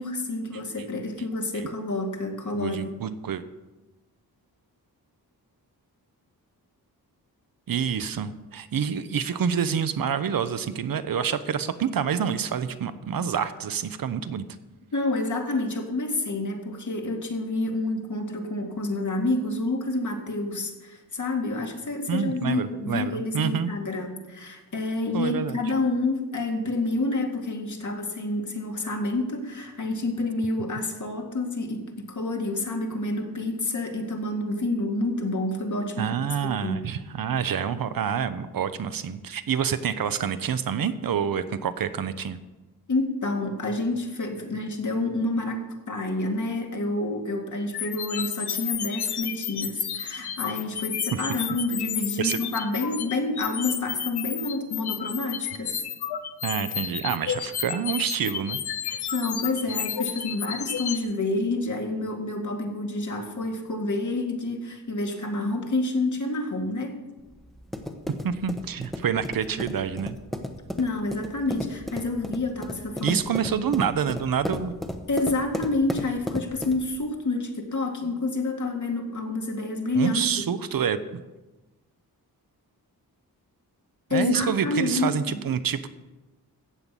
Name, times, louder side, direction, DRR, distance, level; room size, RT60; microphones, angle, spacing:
voice 1, 0.0-2.8 14.9-36.1 36.6-36.8 42.9-55.8 58.9-67.0 70.8-73.2 75.1-80.2 84.1-85.4, left 2 dB, 50° left, 3 dB, 2.1 m, -28 dB
voice 2, 2.5-3.4 7.7-14.4 22.1-23.7 25.1-25.6 36.0-42.4 51.1-51.2 52.2-52.4 56.4-58.6 68.2-70.2 73.0-74.7 80.0-81.2 84.1-85.9, right 7 dB, 60° right, 12 dB, 0.8 m, -27 dB
sound 1, 47.7-61.0, left 9 dB, 90° left, 1.0 m, -32 dB
sound 2, 67.2-77.0, left 1 dB, ahead, 1.1 m, -35 dB
14.5 x 5.7 x 8.2 m, 1.1 s
wide cardioid pair, 115°, 38 cm